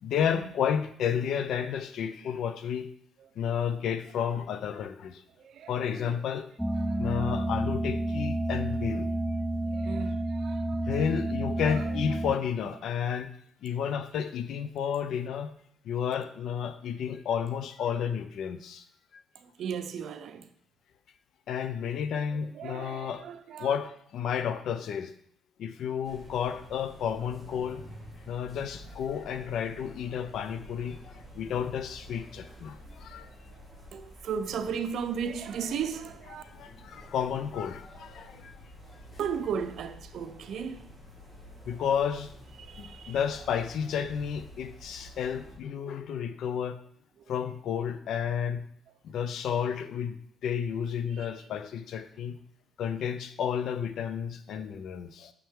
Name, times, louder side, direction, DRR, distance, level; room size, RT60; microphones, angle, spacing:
voice 1, 0.0-2.9 3.4-5.2 5.7-6.5 7.0-9.1 10.7-13.3 13.6-15.5 15.8-18.8 19.1-19.2 21.5-23.2 23.6-25.1 25.6-27.8 28.3-33.3 36.4-38.6 41.7-42.3 42.8-46.8 47.3-48.7 49.0-52.4 52.8-55.3, left 8 dB, 75° left, 0.5 m, -31 dB
voice 2, 5.4-6.2 6.8-7.5 9.7-11.2 11.6-11.8 19.3-20.5 22.5-23.8 33.9-36.4 39.2-40.8 42.6-43.2 51.1-51.5 54.5-54.7, right 7 dB, 70° right, 0.5 m, -36 dB
sound 1, 6.6-12.4, right 1 dB, ahead, 0.3 m, -30 dB
sound 2, 26.0-45.6, equal, 40° left, 2.6 m, -49 dB
6.4 x 5.7 x 3.7 m
cardioid pair, 95°, 0 cm